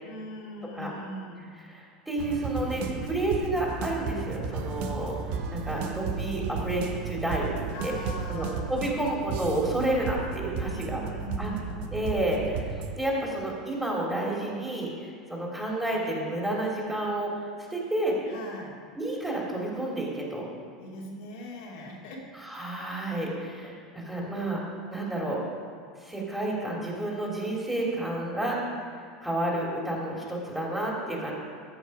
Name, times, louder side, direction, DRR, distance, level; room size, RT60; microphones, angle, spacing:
voice 1, 0.0-1.5 7.7-8.7 10.6-11.8 18.3-18.7 20.8-22.3, left 1 dB, 65° left, -3 dB, 2.5 m, -40 dB
voice 2, 1.7-5.2 5.5-7.9 8.3-11.0 11.4-11.5 11.9-17.4 17.7-18.2 19.0-20.5 22.4-24.6 24.9-25.4 26.0-28.6 29.2-31.3, right 1 dB, 5° right, -3 dB, 3.4 m, -30 dB
sound 1, 2.2-12.9, right 5 dB, 55° right, 1.1 m, -34 dB
14.5 x 7.1 x 5.0 m, 2.2 s
hypercardioid pair, 80°, 3 cm